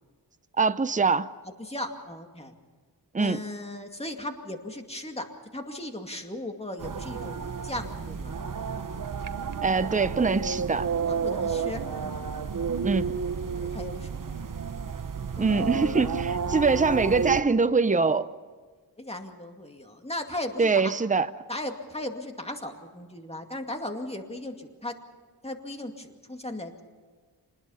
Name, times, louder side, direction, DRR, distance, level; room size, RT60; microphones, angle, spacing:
voice 1, 0.6-1.3 3.1-3.4 9.6-10.9 12.8-13.2 15.4-18.3 20.6-21.3, right 4 dB, 20° right, 12 dB, 0.7 m, -23 dB
voice 2, 1.6-2.5 3.2-8.4 11.2-12.3 13.5-14.1 14.4-14.5 15.4-16.1 19.0-20.9 21.5-24.9 25.4-26.8, left 1 dB, 15° left, 4 dB, 2.3 m, -37 dB
sound 1, 6.8-17.4, right 6 dB, 50° right, 1.0 m, -31 dB
26.5 x 20.5 x 5.7 m, 1.5 s
wide cardioid pair, 95°, 43 cm